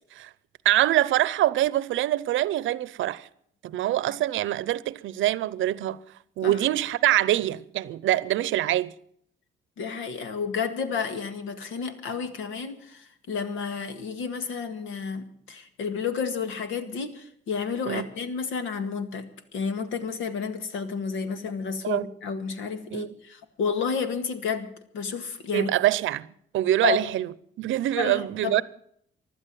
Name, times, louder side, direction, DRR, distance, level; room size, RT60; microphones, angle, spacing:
voice 1, 0.6-3.3 3.6-6.0 6.4-8.9 17.9-18.1 21.8-22.1 22.9-23.1 25.5-26.3 26.5-28.6, right 13 dB, 75° right, 0.7 m, -24 dB
voice 2, 9.8-19.3 19.5-24.7 24.9-25.7 26.8-27.0 27.9-28.6, left 6 dB, 80° left, 1.9 m, -31 dB
15.5 x 11.5 x 7.7 m
cardioid pair, 90°, 20 cm